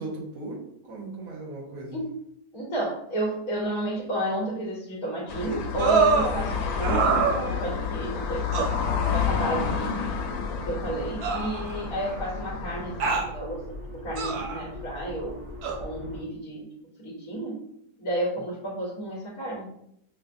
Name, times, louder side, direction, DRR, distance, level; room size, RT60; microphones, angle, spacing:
voice 1, 0.0-2.0, right 2 dB, 60° right, -2 dB, 1.3 m, -37 dB
voice 2, 2.5-10.0 10.7-15.4 15.8-16.7 17.0-17.7 18.0-19.7, right 1 dB, 60° left, -5 dB, 1.3 m, -32 dB
sound 1, 5.3-13.1, left 6 dB, 90° left, 1.2 m, -30 dB
sound 2, 5.8-6.3 6.8-7.8 8.5-8.8 9.8-9.9 11.2-12.1 13.0-13.3 14.2-14.6 15.6-15.8, right 5 dB, 85° right, 0.5 m, -25 dB
sound 3, 10.2-16.2, left 1 dB, 10° right, 0.6 m, -41 dB
5.8 x 2.0 x 2.6 m, 0.74 s
omnidirectional pair, 1.7 m